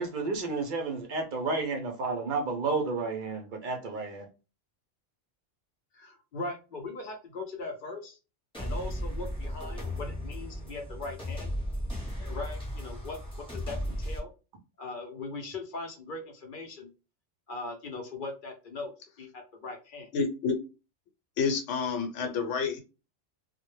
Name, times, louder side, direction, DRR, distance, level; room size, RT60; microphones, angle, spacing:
voice 1, 0.0-4.3, right 3 dB, 60° right, 0.5 m, -31 dB
voice 2, 5.9-8.2 8.6-11.5 12.2-14.3 14.8-16.9 17.5-20.1, left 3 dB, 55° left, 0.6 m, -40 dB
sound 1, 8.5-14.2, equal, 5° left, 0.7 m, -35 dB
voice 3, 20.1-20.6 21.4-22.8, left 5 dB, 80° left, 1.0 m, -29 dB
2.1 x 2.1 x 3.0 m
omnidirectional pair, 1.3 m